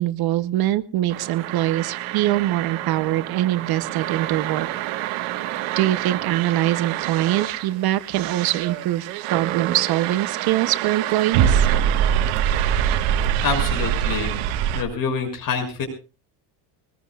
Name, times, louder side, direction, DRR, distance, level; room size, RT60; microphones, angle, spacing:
voice 1, 0.0-4.7 5.8-11.7, right 14 dB, 50° right, 14 dB, 0.8 m, -23 dB
sound 1, 1.1-14.8, right 10 dB, 75° right, 1.5 m, -25 dB
voice 2, 13.4-14.4 14.7-15.9, left 5 dB, 45° left, 5 dB, 6.4 m, -26 dB
22.5 x 20.5 x 2.3 m, 0.34 s
cardioid pair, 145°, 48 cm